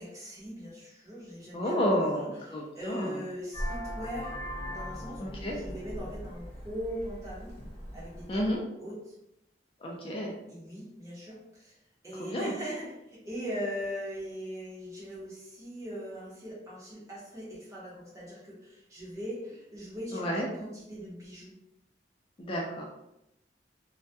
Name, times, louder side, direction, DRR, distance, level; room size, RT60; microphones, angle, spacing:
voice 1, 0.0-4.4 4.7-7.5 7.9-9.1 10.5-11.7 12.0-21.5, equal, 20° right, -7 dB, 0.8 m, -40 dB
voice 2, 1.5-3.2 5.2-5.6 8.3-8.6 9.8-10.4 12.1-12.5 20.1-20.5 22.4-22.8, equal, 30° left, -2 dB, 0.3 m, -31 dB
Vehicle horn car horn honking, 3.5-8.6, equal, 10° left, 0.9 m, -39 dB
2.1 x 2.1 x 2.7 m, 0.86 s
head